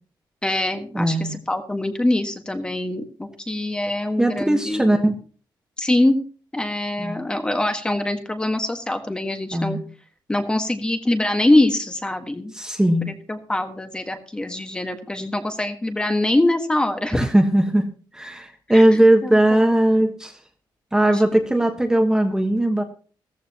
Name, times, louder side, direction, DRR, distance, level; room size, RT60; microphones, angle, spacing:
voice 1, 0.4-5.0 5.8-6.2 6.5-9.8 10.3-12.5 13.0-17.2 18.7-19.4 21.3-21.4, left 1 dB, 10° left, 6 dB, 1.6 m, -23 dB
voice 2, 0.9-1.3 4.2-5.1 7.0-7.2 9.5-9.8 12.5-13.1 17.1-17.8 18.1-20.4 20.9-22.8, right 1 dB, 5° right, 3 dB, 1.3 m, -18 dB
16.0 x 14.5 x 3.0 m, 0.38 s
wide cardioid pair, 155°, 8 cm